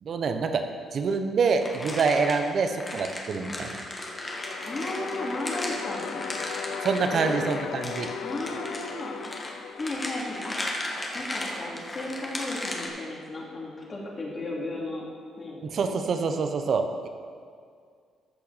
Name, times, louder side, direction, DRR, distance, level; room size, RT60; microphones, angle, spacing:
voice 1, 0.0-0.6 0.9-3.7 6.8-8.1 15.6-17.1, right 5 dB, 55° right, 7 dB, 0.8 m, -26 dB
sound 1, 1.6-12.9, left 1 dB, 20° left, 1.4 m, -36 dB
sound 2, 4.0-11.0, left 7 dB, 85° left, 0.5 m, -37 dB
voice 2, 4.6-6.2 7.1-7.4 8.2-9.2 9.7-10.9 11.1-15.1 15.4-15.7, left 2 dB, 35° left, -4 dB, 2.5 m, -35 dB
13.5 x 5.9 x 4.1 m, 2.1 s
cardioid pair, 90°, 0 cm